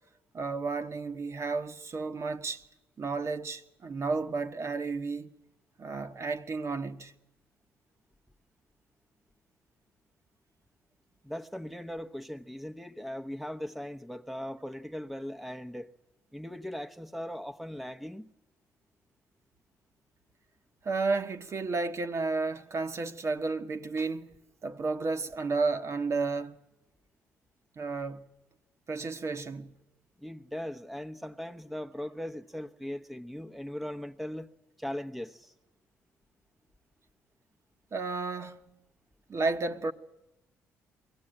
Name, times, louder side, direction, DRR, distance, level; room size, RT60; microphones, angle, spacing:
voice 1, 0.3-2.6 3.0-5.3 5.8-7.1 20.8-24.4 24.6-26.6 27.8-28.2 28.9-29.8 37.9-38.7 39.3-39.9, right 3 dB, 45° right, 1.2 m, -32 dB
voice 2, 11.2-15.9 16.3-18.3 30.2-34.5 34.8-35.5, left 1 dB, ahead, 1.0 m, -39 dB
22.5 x 16.5 x 8.9 m
hypercardioid pair, 55°, 7 cm